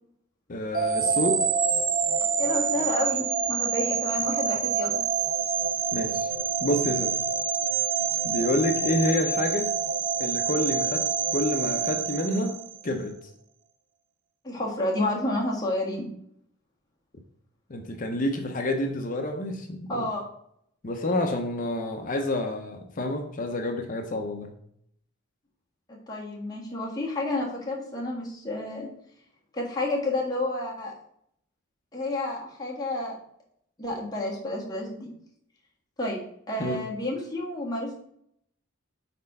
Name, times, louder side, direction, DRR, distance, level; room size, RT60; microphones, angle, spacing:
voice 1, 0.5-1.4 5.9-6.3 6.6-7.1 8.2-9.7 10.2-12.6 12.8-13.2 17.7-20.1 20.8-24.5 36.6-36.8, left 1 dB, 40° left, 4 dB, 0.6 m, -28 dB
sound 1, 0.7-12.9, right 6 dB, 40° right, 0.6 m, -27 dB
voice 2, 2.4-5.0 14.4-16.1 19.9-20.2 25.9-28.9 29.5-30.9 31.9-33.2 33.8-35.1 36.0-36.2 36.5-37.9, left 1 dB, 20° left, -4 dB, 1.5 m, -30 dB
4.3 x 4.2 x 5.3 m, 0.69 s
head